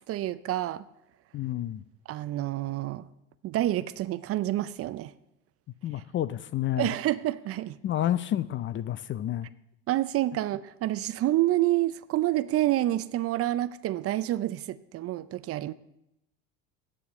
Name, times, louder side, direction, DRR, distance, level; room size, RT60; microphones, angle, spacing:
voice 1, 0.1-0.8 2.1-3.0 3.4-5.1 6.8-7.8 9.9-15.7, right 15 dB, 40° right, 0.5 m, -28 dB
voice 2, 1.3-1.8 5.8-6.9 7.8-9.5, left 12 dB, 30° left, 0.4 m, -29 dB
9.9 x 7.9 x 6.1 m
hypercardioid pair, 90°, 38 cm